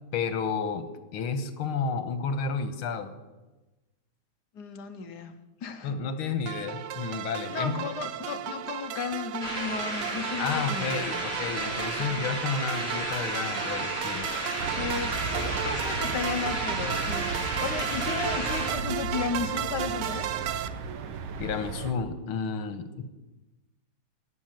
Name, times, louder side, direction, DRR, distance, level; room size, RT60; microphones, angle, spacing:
voice 1, 0.1-0.9 1.1-3.1 5.8-7.8 10.4-14.3 21.4-23.1, left 5 dB, 85° left, 9 dB, 2.0 m, -31 dB
voice 2, 4.5-5.9 7.5-11.3 12.0-12.2 14.8-20.3, left 5 dB, 60° left, 7 dB, 1.4 m, -34 dB
sound 1, 6.5-20.7, right 11 dB, 70° right, 1.2 m, -34 dB
sound 2, 9.4-18.7, right 1 dB, 30° right, 4.2 m, -33 dB
sound 3, 14.6-21.9, right 4 dB, 90° right, 1.9 m, -36 dB
17.0 x 6.8 x 9.1 m, 1.1 s
omnidirectional pair, 2.3 m